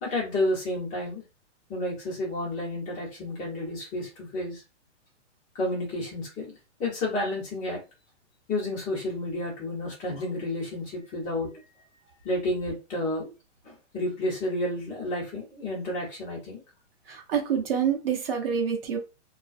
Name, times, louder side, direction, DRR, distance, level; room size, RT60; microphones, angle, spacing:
voice 1, 0.0-1.2 1.7-4.6 5.5-6.5 6.8-7.8 8.5-11.5 12.2-13.3 13.6-16.6, left 1 dB, 20° left, 1.1 m, -31 dB
voice 2, 17.1-19.0, right 7 dB, 50° right, 0.7 m, -27 dB
2.4 x 2.2 x 2.4 m
hypercardioid pair, 150°, 37 cm